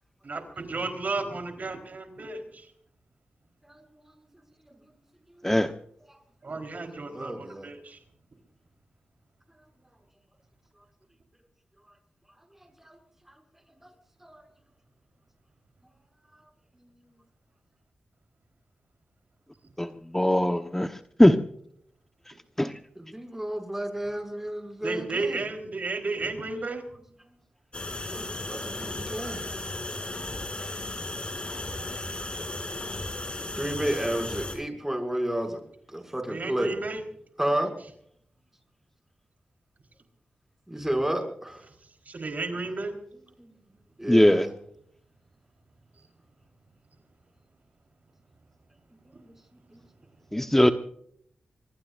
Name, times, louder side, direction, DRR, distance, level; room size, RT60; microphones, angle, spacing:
voice 1, 0.2-2.7 6.4-8.0 24.8-26.8 36.3-37.0 42.1-43.0, right 3 dB, 60° right, 5 dB, 4.2 m, -33 dB
voice 2, 6.8-7.7 12.6-13.0 13.3-13.4 13.8-13.9 14.2-14.4 23.0-25.4 28.1-29.4 31.3-32.0 33.6-35.6 35.9-36.7 37.4-37.7 40.7-41.6 43.4-43.5 44.0-44.5 49.2-49.3 49.7-49.8, right 1 dB, 10° right, 5 dB, 6.6 m, -32 dB
voice 3, 19.8-21.4 22.3-22.8 44.1-44.5 50.3-50.7, left 1 dB, 10° left, 7 dB, 1.2 m, -21 dB
sound 1, 27.7-34.5, left 2 dB, 35° left, 7.3 m, -35 dB
25.5 x 21.0 x 2.6 m, 0.66 s
cardioid pair, 50°, 3 cm